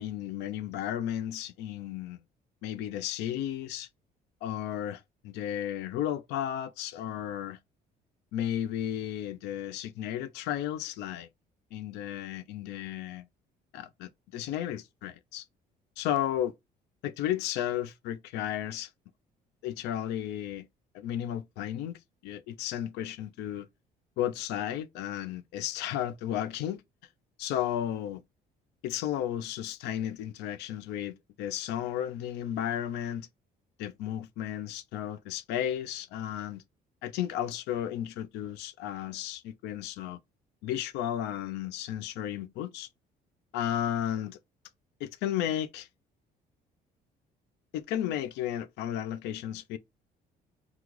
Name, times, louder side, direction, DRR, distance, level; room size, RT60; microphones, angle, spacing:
voice 1, 0.0-2.2 2.6-3.9 4.4-7.6 8.3-11.3 11.7-13.2 13.7-15.5 16.0-16.5 17.0-18.9 19.6-20.7 20.9-23.7 24.2-26.8 27.4-28.2 28.8-33.3 33.8-36.6 37.0-40.2 40.6-42.9 43.5-44.4 45.0-45.9 47.7-49.8, left 11 dB, 85° left, 0.5 m, -33 dB
3.0 x 2.3 x 3.6 m
cardioid pair, 110°, 17 cm